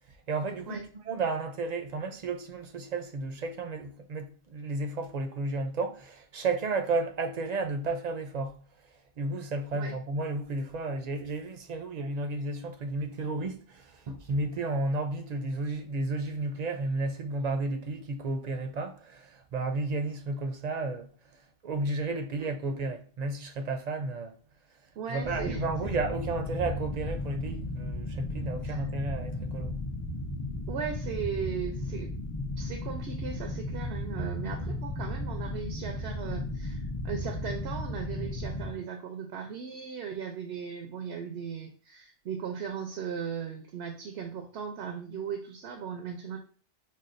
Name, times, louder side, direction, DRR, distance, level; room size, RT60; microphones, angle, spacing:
voice 1, 0.3-8.6 9.2-21.1 21.6-24.3 25.1-29.7, right 3 dB, 50° right, 0.5 m, -32 dB
voice 2, 25.0-25.6 28.6-28.8 30.7-32.1 32.6-46.4, right 7 dB, 90° right, 0.9 m, -37 dB
sound 1, 25.2-38.7, left 1 dB, 30° left, 0.4 m, -35 dB
5.4 x 2.3 x 2.5 m
omnidirectional pair, 1.1 m